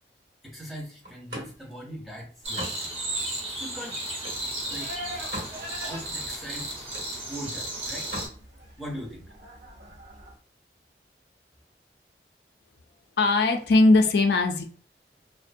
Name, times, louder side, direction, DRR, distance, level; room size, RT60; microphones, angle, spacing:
voice 1, 0.4-2.9 3.6-4.0 4.7-4.9 5.8-6.8 7.3-8.1 8.8-9.3, equal, ahead, -3 dB, 0.6 m, -40 dB
Slam, 1.0-4.5 4.9-5.6 6.0-7.2 7.9-8.4, equal, 55° right, 1.1 m, -40 dB
sound 1, 2.4-8.3, right 1 dB, 35° right, 0.7 m, -34 dB
Livestock farm animals working animals, 4.3-10.4, equal, 90° right, 0.7 m, -44 dB
voice 2, 13.2-14.6, left 2 dB, 65° left, 4 dB, 0.4 m, -19 dB
2.5 x 2.1 x 2.5 m, 0.43 s
head